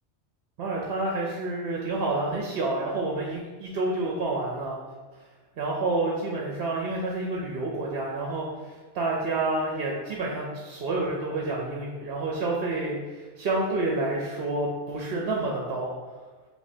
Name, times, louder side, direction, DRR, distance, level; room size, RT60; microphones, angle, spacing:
voice 1, 0.6-4.8 5.6-15.9, right 2 dB, 65° right, -2 dB, 0.8 m, -29 dB
5.1 x 3.3 x 2.7 m, 1.3 s
omnidirectional pair, 1.2 m